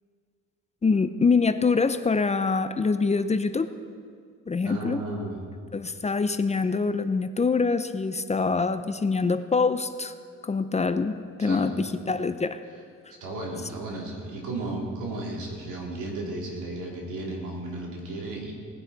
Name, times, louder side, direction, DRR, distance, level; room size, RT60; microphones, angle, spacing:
voice 1, 0.8-3.7 4.5-5.0 5.7-10.1 10.4-12.6, left 4 dB, 25° left, 11 dB, 0.5 m, -25 dB
voice 2, 4.6-5.4 11.4-11.7 13.2-18.5, right 2 dB, 85° right, -1 dB, 2.8 m, -34 dB
18.5 x 10.0 x 4.0 m, 2.1 s
cardioid pair, 90°, 30 cm